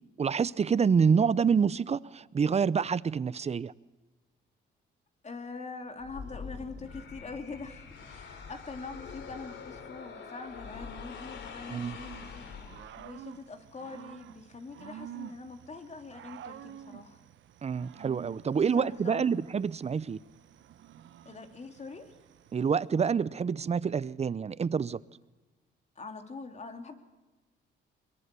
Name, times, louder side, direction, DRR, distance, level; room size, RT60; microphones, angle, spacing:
voice 1, 0.2-3.7 11.7-12.0 17.6-20.2 22.5-25.0, right 6 dB, 35° right, 0.7 m, -27 dB
voice 2, 5.2-12.5 13.0-17.2 18.5-19.3 21.2-22.1 25.9-26.9, left 4 dB, 35° left, 2.9 m, -43 dB
sound 1, 6.0-13.2, left 6 dB, 70° left, 3.4 m, -45 dB
Growling / Cricket, 11.9-22.9, right 10 dB, 70° right, 1.0 m, -49 dB
23.0 x 22.0 x 6.9 m
cardioid pair, 90°, 20 cm